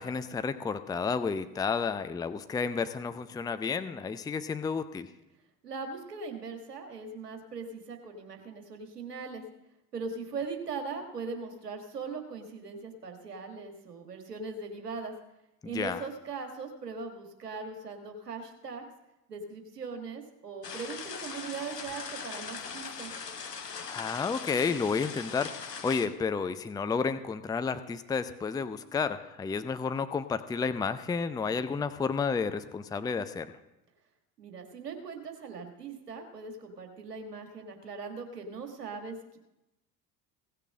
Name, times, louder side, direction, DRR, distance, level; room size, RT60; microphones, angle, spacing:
voice 1, 0.0-5.1 15.6-16.0 23.9-33.5, left 5 dB, 10° left, 12 dB, 0.5 m, -31 dB
voice 2, 5.6-9.4 9.9-15.1 15.6-18.9 19.3-23.1 34.4-39.4, right 4 dB, 85° right, 5 dB, 1.6 m, -40 dB
sound 1, 20.6-26.1, left 6 dB, 90° left, 0.9 m, -40 dB
16.5 x 6.8 x 6.3 m, 0.91 s
figure-of-eight pair, 65°, 46 cm